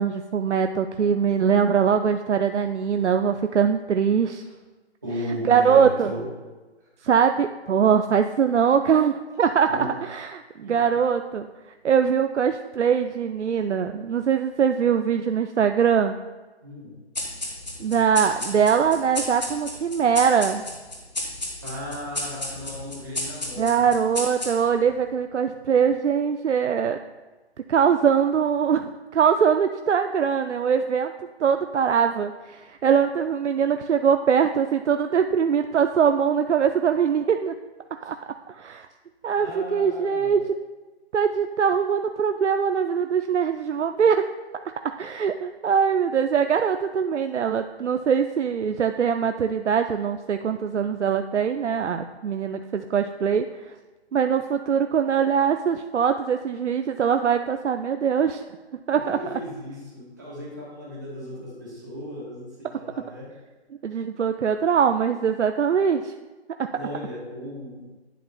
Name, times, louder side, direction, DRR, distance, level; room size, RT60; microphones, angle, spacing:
voice 1, 0.0-4.4 5.5-6.1 7.0-11.5 11.8-16.2 17.8-20.6 23.6-27.0 27.7-31.1 31.4-37.5 38.1-38.2 38.5-38.9 39.2-40.4 41.1-44.3 45.0-53.7 54.1-58.4 58.9-59.2 63.8-66.1 66.6-66.7, right 7 dB, 90° right, 7 dB, 0.5 m, -22 dB
voice 2, 5.0-6.3 6.8-6.9 9.7-9.9 10.6-11.0 16.6-17.0 21.6-23.7 39.3-40.4 58.9-63.3 66.7-67.9, equal, 15° right, -7 dB, 1.5 m, -36 dB
sound 1, 17.1-24.9, left 1 dB, 40° left, 1.1 m, -33 dB
11.0 x 5.4 x 2.3 m, 1.2 s
figure-of-eight pair, 175°, 34 cm